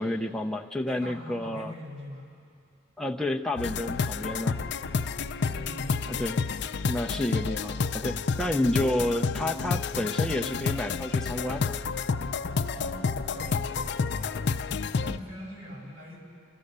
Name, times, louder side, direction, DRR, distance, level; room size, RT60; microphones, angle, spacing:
voice 1, 0.0-1.7 3.0-4.6 6.1-6.4 6.9-11.8, left 1 dB, 5° left, 1 dB, 0.5 m, -30 dB
voice 2, 1.0-2.3 5.4-6.3 12.7-16.2, equal, 70° right, -3 dB, 7.2 m, -43 dB
sound 1, 3.6-15.2, left 5 dB, 60° left, 0.5 m, -30 dB
28.5 x 14.0 x 6.7 m, 2.4 s
head